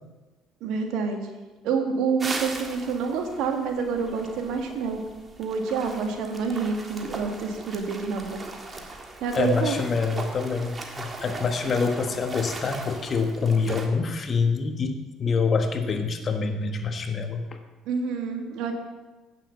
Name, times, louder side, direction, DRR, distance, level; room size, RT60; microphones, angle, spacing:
voice 1, 0.6-1.3 1.6-5.0 5.4-8.4 9.2-9.8 17.8-18.7, right 5 dB, 75° right, 4 dB, 1.6 m, -27 dB
sound 1, 2.2-13.9, right 2 dB, 30° right, 1.7 m, -39 dB
voice 2, 9.3-17.6, left 4 dB, 45° left, 6 dB, 1.4 m, -26 dB
8.9 x 7.2 x 7.0 m, 1.2 s
supercardioid pair, 75°, 0 cm